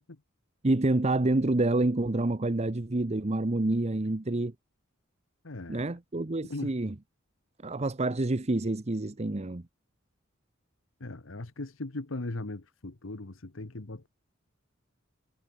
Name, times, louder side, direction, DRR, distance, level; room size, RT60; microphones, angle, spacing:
voice 1, 0.6-4.5 5.7-6.9 7.6-9.6, right 2 dB, 30° right, 0.9 m, -28 dB
voice 2, 5.4-5.9 6.5-6.7 11.0-14.1, left 2 dB, 70° left, 1.3 m, -38 dB
head